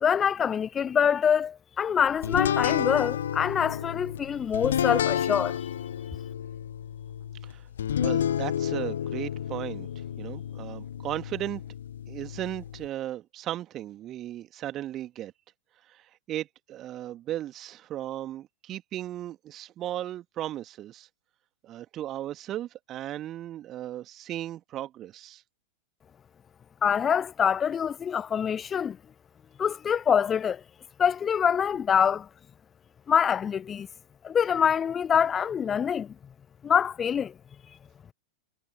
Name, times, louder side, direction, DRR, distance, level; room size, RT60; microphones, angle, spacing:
voice 1, 0.0-5.7 26.8-29.0 29.6-30.6 31.0-32.3 33.1-33.9 34.2-36.1 36.6-37.3, left 7 dB, 20° left, 0.7 m, -25 dB
sound 1, 2.2-12.9, left 9 dB, 65° left, 1.0 m, -30 dB
voice 2, 8.0-11.6 12.1-15.3 15.8-21.1 21.6-25.4, right 13 dB, 30° right, 1.9 m, -36 dB
figure-of-eight pair, 90°, 0 cm